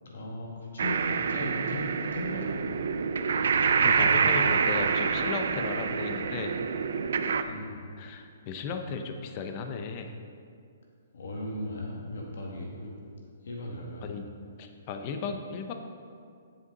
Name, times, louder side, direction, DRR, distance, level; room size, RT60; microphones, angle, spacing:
voice 1, 0.0-2.6 7.4-7.8 11.1-12.9 13.4-14.1, left 1 dB, 75° left, -2 dB, 2.0 m, -37 dB
sound 1, 0.8-7.4, right 6 dB, 70° right, 0.4 m, -26 dB
voice 2, 3.8-6.6 7.5-7.6 8.0-10.2 14.0-14.3 14.6-15.7, left 5 dB, 35° left, 6 dB, 0.7 m, -35 dB
8.1 x 7.3 x 4.0 m, 2.3 s
hypercardioid pair, 155°, 0 cm